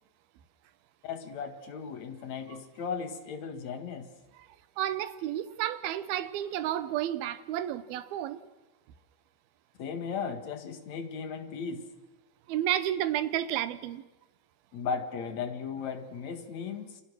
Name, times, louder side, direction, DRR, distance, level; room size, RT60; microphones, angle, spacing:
voice 1, 1.0-4.1 9.8-11.9 14.7-17.0, left 6 dB, 50° left, 2.9 m, -36 dB
voice 2, 4.8-8.4 12.5-14.0, right 12 dB, 75° right, 2.8 m, -31 dB
29.5 x 25.5 x 6.4 m
omnidirectional pair, 4.8 m